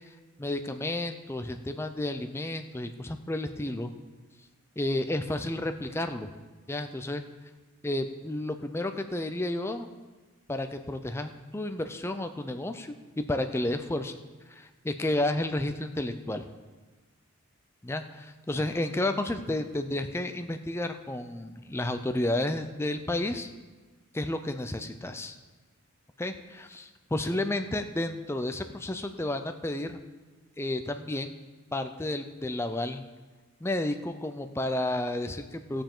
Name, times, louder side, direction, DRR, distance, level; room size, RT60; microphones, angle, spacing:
voice 1, 0.4-3.9 4.8-6.3 6.7-7.2 7.8-9.9 10.5-14.1 14.5-16.4 17.8-18.0 18.5-23.5 24.1-25.4 26.2-30.0 30.6-31.4 31.7-33.0 33.6-35.8, left 1 dB, 10° left, 7 dB, 0.5 m, -31 dB
19.0 x 6.9 x 3.8 m, 1.3 s
head